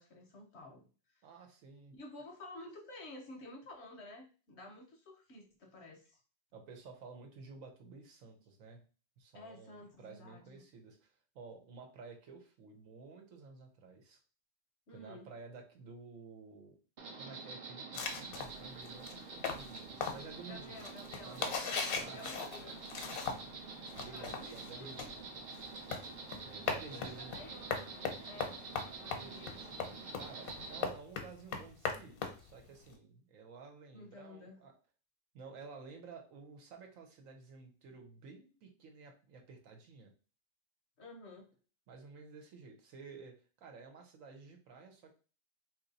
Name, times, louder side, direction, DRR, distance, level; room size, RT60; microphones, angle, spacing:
voice 1, 0.0-1.3 1.9-6.2 9.3-10.7 14.9-15.3 20.4-21.4 21.8-22.9 24.1-25.1 26.9-28.6 28.9-29.6 33.9-34.6 41.0-41.5, left 2 dB, 60° left, 2 dB, 0.8 m, -52 dB
voice 2, 1.2-1.9 6.5-8.8 9.2-14.2 14.9-16.8 17.1-20.9 21.2-21.5 21.9-23.4 23.9-25.3 26.4-27.6 29.0-29.6 30.2-34.7 35.3-40.1 41.9-45.1, right 4 dB, 70° right, 3 dB, 1.1 m, -53 dB
Insect, 17.0-30.8, right 4 dB, 50° right, 0.6 m, -47 dB
sound 1, 17.9-23.6 23.9-32.9, left 5 dB, 75° left, 1.1 m, -39 dB
2.9 x 2.6 x 3.9 m, 0.37 s
omnidirectional pair, 1.5 m